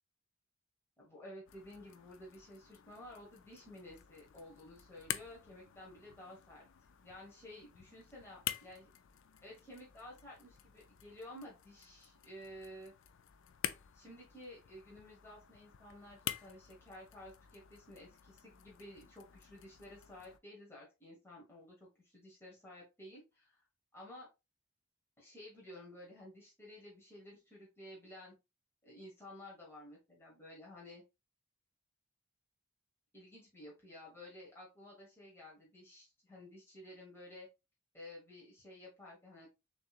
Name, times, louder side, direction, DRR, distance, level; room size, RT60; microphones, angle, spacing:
voice 1, 1.0-6.6 7.0-8.9 9.4-12.9 13.9-23.6 23.9-24.3 25.2-28.3 28.8-31.0 33.1-37.5 37.9-39.5, left 1 dB, 10° left, -5 dB, 1.4 m, -53 dB
sound 1, 1.5-20.4, left 11 dB, 60° left, 0.4 m, -48 dB
6.6 x 3.2 x 2.4 m, 0.25 s
head